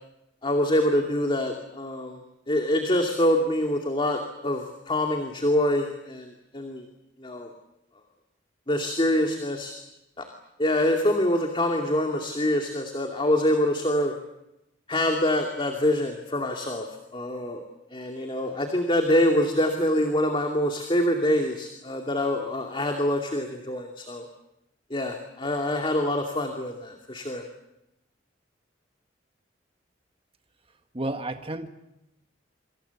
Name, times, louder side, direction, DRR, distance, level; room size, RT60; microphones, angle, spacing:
voice 1, 0.4-6.8 7.2-7.5 8.7-9.7 10.2-10.3 10.6-14.1 14.9-16.9 17.1-17.7 17.9-24.3 24.9-27.4, left 1 dB, 30° left, 3 dB, 2.5 m, -25 dB
voice 2, 30.9-31.7, right 1 dB, 30° right, 6 dB, 1.7 m, -31 dB
28.0 x 26.0 x 7.2 m, 0.88 s
head